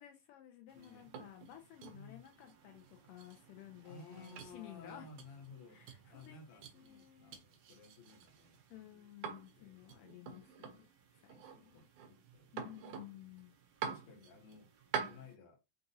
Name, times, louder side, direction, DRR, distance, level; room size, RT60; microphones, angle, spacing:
voice 1, 0.0-5.1 5.7-7.4 8.7-11.9 12.5-13.5, left 13 dB, 80° left, 2.2 m, -55 dB
voice 2, 0.7-1.1 1.9-2.2 3.8-5.8 6.1-9.1 9.6-10.1 11.3-13.4 13.8-14.7 15.1-15.6, left 3 dB, 60° left, 1.5 m, -56 dB
sound 1, 0.7-15.4, right 7 dB, 75° right, 2.0 m, -48 dB
5.8 x 2.5 x 2.7 m
omnidirectional pair, 4.1 m